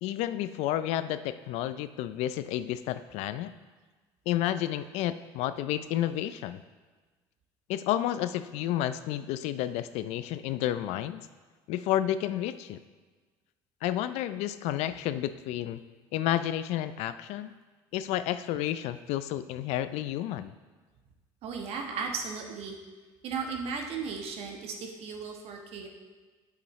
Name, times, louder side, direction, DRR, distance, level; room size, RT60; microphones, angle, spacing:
voice 1, 0.0-3.5 4.3-6.6 7.7-11.2 11.7-12.8 13.8-15.8 16.1-17.5 17.9-20.5, left 12 dB, 75° left, 13 dB, 0.4 m, -31 dB
voice 2, 21.4-22.7 23.2-25.9, right 5 dB, 65° right, 2 dB, 1.3 m, -36 dB
8.5 x 7.4 x 3.1 m, 1.3 s
supercardioid pair, 85°, 11 cm